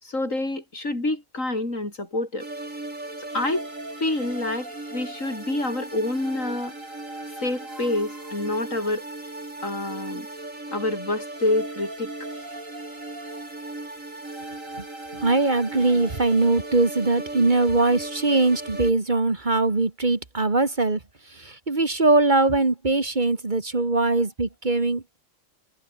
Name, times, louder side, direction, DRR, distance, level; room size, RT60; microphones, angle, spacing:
voice 1, 0.0-2.5 3.2-3.7 4.0-6.7 7.4-9.0 9.6-10.3 10.7-12.1, left 2 dB, 85° left, 6.6 m, -27 dB
sound 1, 2.4-18.9, right 2 dB, 90° right, 6.5 m, -37 dB
voice 2, 15.2-21.0 21.3-25.0, right 2 dB, 35° right, 2.2 m, -21 dB
omnidirectional pair, 1.3 m